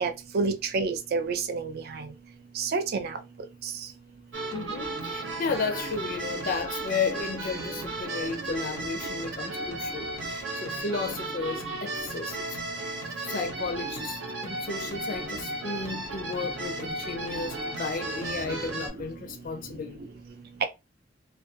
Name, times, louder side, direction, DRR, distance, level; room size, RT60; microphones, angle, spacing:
voice 1, 0.0-1.7 2.6-3.1, right 4 dB, 55° right, 0.4 m, -28 dB
sound 1, 4.3-18.9, right 2 dB, 70° right, 0.9 m, -35 dB
voice 2, 4.5-12.6 13.2-20.0, left 4 dB, 50° left, 0.4 m, -33 dB
2.4 x 2.2 x 2.6 m
head